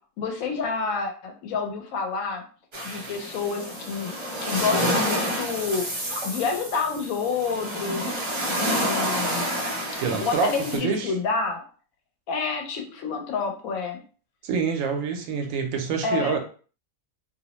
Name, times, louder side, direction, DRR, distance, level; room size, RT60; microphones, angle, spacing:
voice 1, 0.2-2.4 2.8-4.1 4.4-5.9 6.2-8.1 8.5-9.5 9.9-11.6 12.3-14.0 16.0-16.4, left 5 dB, 80° left, 4 dB, 1.0 m, -28 dB
sound 1, 2.7-10.8, equal, 40° right, 0.4 m, -29 dB
voice 2, 10.0-11.1 14.4-16.4, right 6 dB, 75° right, 4 dB, 0.9 m, -26 dB
2.5 x 2.0 x 2.9 m, 0.40 s
omnidirectional pair, 1.4 m